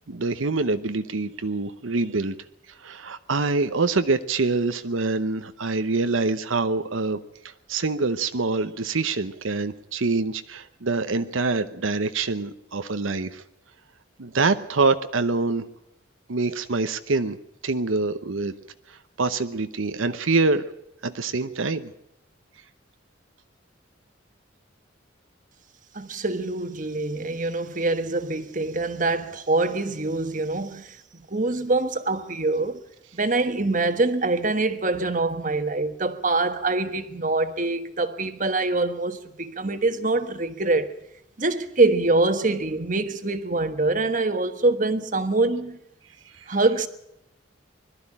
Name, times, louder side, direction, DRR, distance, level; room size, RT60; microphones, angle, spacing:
voice 1, 0.1-2.4 2.8-7.2 7.4-13.4 14.2-15.6 16.3-17.4 17.6-18.5 18.9-20.6 21.0-21.9 46.3-46.5, right 3 dB, 80° right, 0.9 m, -25 dB
voice 2, 25.9-31.0 31.3-32.8 33.1-40.9 41.4-45.8 46.5-46.9, right 2 dB, 40° right, 1.3 m, -24 dB
21.5 x 13.0 x 10.0 m
head